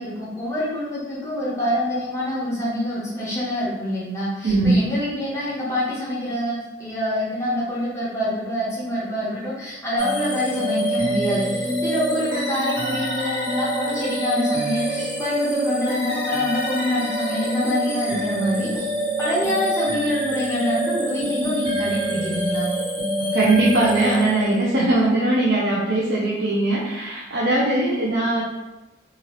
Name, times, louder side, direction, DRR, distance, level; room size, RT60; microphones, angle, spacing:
voice 1, 0.0-18.9 19.2-22.7, left 1 dB, 15° left, -7 dB, 0.7 m, -26 dB
voice 2, 4.4-4.8 23.3-28.4, right 2 dB, 65° right, -5 dB, 0.5 m, -20 dB
sound 1, 10.0-24.7, right 1 dB, 30° right, 1.1 m, -26 dB
2.8 x 2.4 x 3.1 m, 1.1 s
head